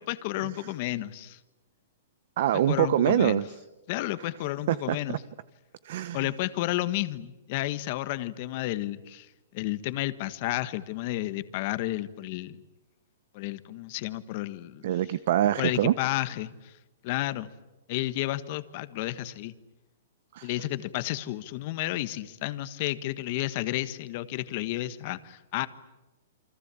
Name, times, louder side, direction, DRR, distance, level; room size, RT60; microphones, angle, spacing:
voice 1, 0.0-1.4 2.7-3.4 3.9-5.2 6.1-12.6 13.3-14.8 15.6-16.7 17.0-17.5 17.9-19.5 20.4-25.7, left 16 dB, 40° left, 13 dB, 1.5 m, -31 dB
voice 2, 2.4-3.4 4.7-5.2 5.8-6.3 14.8-15.9 20.3-20.5, right 12 dB, 50° right, 16 dB, 0.9 m, -25 dB
29.0 x 24.5 x 8.4 m, 1.0 s
hypercardioid pair, 160°, 0 cm